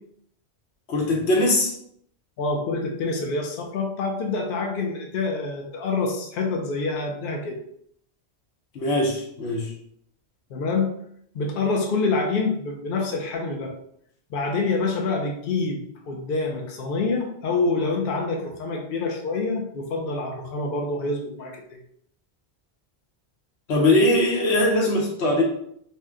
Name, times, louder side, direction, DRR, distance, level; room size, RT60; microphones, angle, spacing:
voice 1, 0.9-1.7 8.7-9.7 23.7-25.4, left 1 dB, 85° left, -1 dB, 1.0 m, -21 dB
voice 2, 2.4-7.6 10.5-10.9 11.3-13.7 14.3-21.8, left 3 dB, 60° left, 1 dB, 0.7 m, -26 dB
2.8 x 2.1 x 3.5 m, 0.70 s
omnidirectional pair, 1.1 m